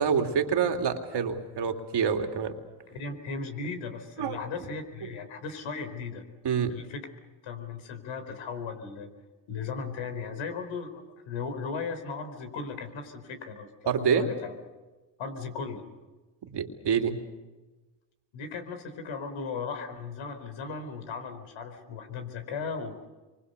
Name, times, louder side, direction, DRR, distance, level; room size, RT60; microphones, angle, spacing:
voice 1, 0.0-2.5 4.2-4.4 6.4-6.8 13.9-14.3 16.5-17.2, right 7 dB, 60° right, 5 dB, 3.0 m, -27 dB
voice 2, 2.9-6.2 6.7-7.1 7.4-9.1 9.5-13.7 14.0-14.5 15.2-15.8 18.3-23.1, left 5 dB, 75° left, 7 dB, 4.4 m, -37 dB
27.5 x 24.5 x 6.8 m, 1.2 s
supercardioid pair, 70°, 47 cm